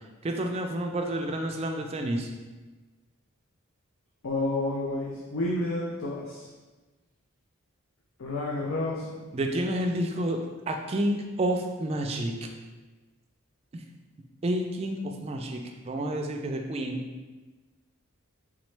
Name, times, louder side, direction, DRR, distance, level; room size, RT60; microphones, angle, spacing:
voice 1, 0.2-2.3 9.3-10.4 10.7-12.5 14.4-17.0, right 1 dB, 30° right, 3 dB, 0.3 m, -29 dB
voice 2, 4.2-6.5 8.2-9.2, left 2 dB, 70° left, -4 dB, 0.5 m, -30 dB
3.6 x 3.0 x 3.2 m, 1.3 s
head